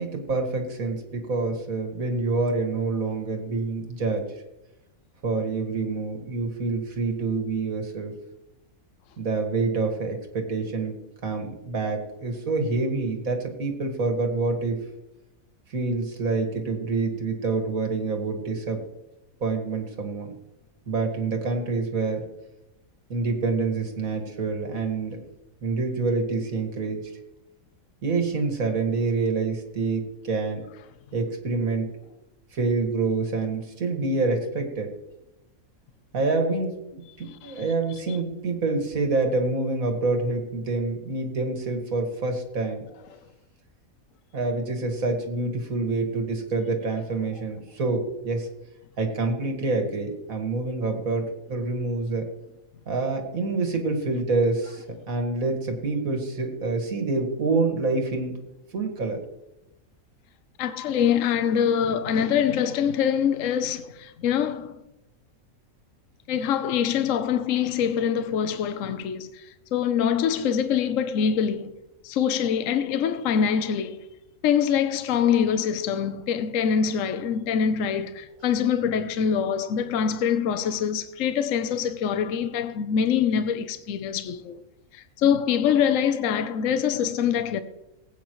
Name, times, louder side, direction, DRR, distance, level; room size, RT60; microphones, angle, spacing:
voice 1, 0.0-4.3 5.2-8.2 9.2-11.0 11.2-14.8 15.7-18.8 19.4-20.3 20.9-22.2 23.1-25.2 25.6-27.0 28.0-30.6 31.1-31.9 32.5-34.9 36.1-42.8 44.3-48.5 49.0-52.3 52.9-58.3 58.7-59.2, right 3 dB, 75° right, 2.4 m, -27 dB
voice 2, 37.2-37.6 43.1-43.2 60.6-64.8 66.3-71.7 72.0-74.1 74.4-84.6 84.9-87.6, left 8 dB, 70° left, 1.0 m, -24 dB
19.5 x 8.9 x 3.1 m
omnidirectional pair, 1.5 m